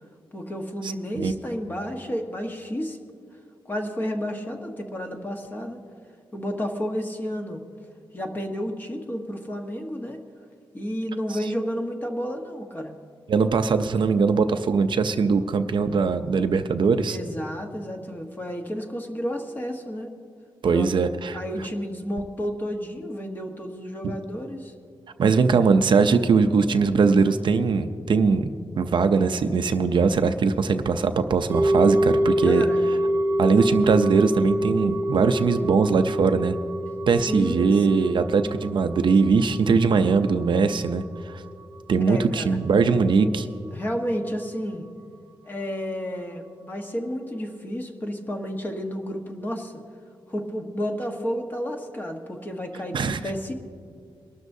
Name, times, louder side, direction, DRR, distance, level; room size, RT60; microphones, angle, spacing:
voice 1, 0.3-3.0 3.6-5.8 6.3-7.6 8.1-10.2 10.7-13.0 17.1-20.1 20.6-24.7 32.4-32.8 37.3-38.2 42.1-42.6 43.7-44.9 45.5-49.7 50.3-53.5, equal, 20° left, 3 dB, 1.1 m, -31 dB
voice 2, 0.8-1.3 13.3-17.2 20.6-21.4 24.0-24.1 25.2-28.5 28.8-32.7 33.4-36.6 37.1-41.4 41.9-43.5 52.9-53.2, right 5 dB, 60° right, 8 dB, 0.5 m, -21 dB
sound 1, 31.5-41.8 42.0-42.1, right 1 dB, 20° right, 0.7 m, -26 dB
23.5 x 12.5 x 2.7 m, 2.2 s
wide cardioid pair, 160°, 9 cm